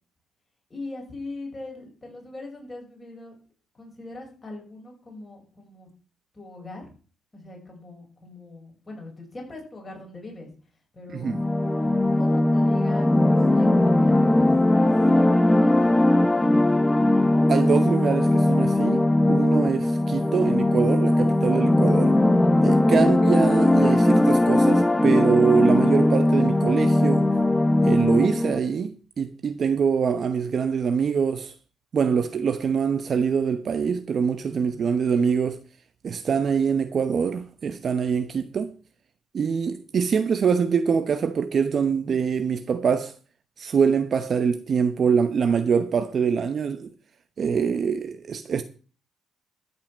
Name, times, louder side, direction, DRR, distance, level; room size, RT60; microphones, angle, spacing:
voice 1, 0.7-3.3 3.7-5.9 6.3-6.9 7.3-10.5 10.9-11.3 12.0-16.1, left 2 dB, 25° left, 6.7 m, -40 dB
sound 1, 11.2-28.6, left 1 dB, 10° left, 1.0 m, -20 dB
voice 2, 17.5-22.2 22.6-27.3 27.8-31.5 31.9-35.6 36.0-38.7 39.3-43.1 43.6-46.9 47.4-48.6, right 6 dB, 50° right, 0.9 m, -24 dB
13.5 x 5.7 x 7.3 m
cardioid pair, 90°, 0 cm